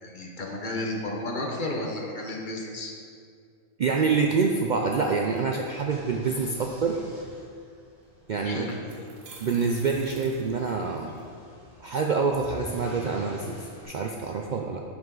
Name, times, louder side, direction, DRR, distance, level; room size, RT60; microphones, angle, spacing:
voice 1, 0.0-2.9 8.4-8.8, left 1 dB, 40° left, 0 dB, 1.0 m, -32 dB
voice 2, 3.8-7.0 8.3-8.7 9.4-11.1 11.8-14.8, right 4 dB, 90° right, 2 dB, 0.4 m, -26 dB
car engine starting, 5.8-13.8, equal, 25° right, 2.4 m, -47 dB
sound 1, 8.0-8.1 8.7-11.2, right 3 dB, 70° right, 1.4 m, -49 dB
10.5 x 5.9 x 3.8 m, 2.2 s
omnidirectional pair, 1.4 m